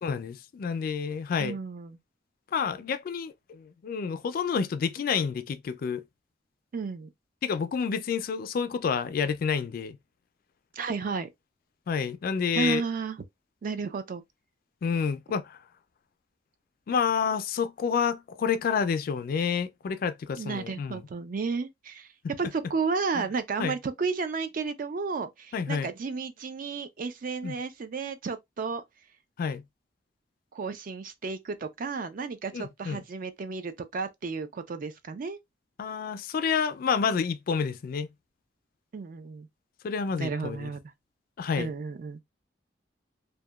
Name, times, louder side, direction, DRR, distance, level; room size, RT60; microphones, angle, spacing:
voice 1, 0.0-1.6 2.5-6.0 7.4-10.0 11.9-12.8 14.8-15.6 16.9-21.0 23.2-23.3 23.6-23.7 25.5-25.9 27.4-27.5 29.4-29.6 32.5-33.0 35.8-38.1 39.8-40.7 41.4-41.7, left 6 dB, 50° left, 0.3 m, -29 dB
voice 2, 1.4-2.0 6.7-7.1 10.7-11.3 12.5-13.2 13.6-14.2 20.4-22.1 22.4-28.8 30.5-35.4 38.9-39.5 40.2-40.8 41.6-42.2, right 4 dB, 50° right, 0.4 m, -32 dB
2.8 x 2.1 x 2.2 m
head